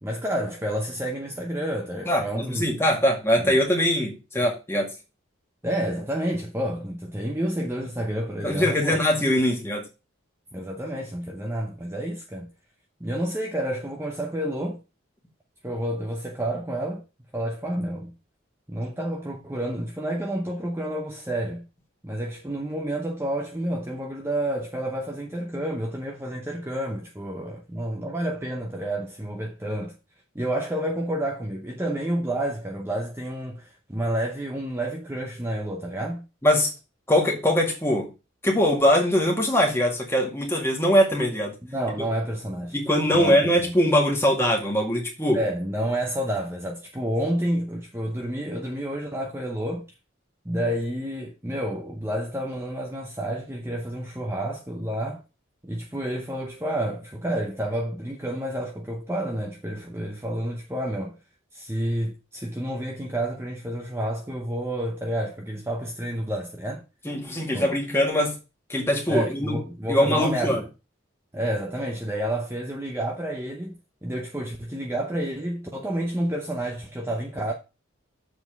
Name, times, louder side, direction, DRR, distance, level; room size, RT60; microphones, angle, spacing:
voice 1, 0.0-2.7 3.4-3.6 5.6-9.0 10.5-12.5 13.0-14.8 15.6-17.0 17.3-18.1 18.7-21.7 22.0-30.0 30.3-36.3 41.6-42.8 43.1-43.8 45.3-49.9 50.4-55.2 55.6-61.2 61.5-66.8 67.5-67.7 69.1-70.6 71.3-77.5, right 1 dB, 10° right, 0.8 m, -29 dB
voice 2, 2.1-4.9 8.4-9.9 36.4-36.7 37.1-38.1 38.4-41.5 42.7-45.4 67.0-68.4 68.7-69.6 69.9-70.6, equal, 10° left, 2.0 m, -22 dB
7.1 x 4.2 x 6.8 m
head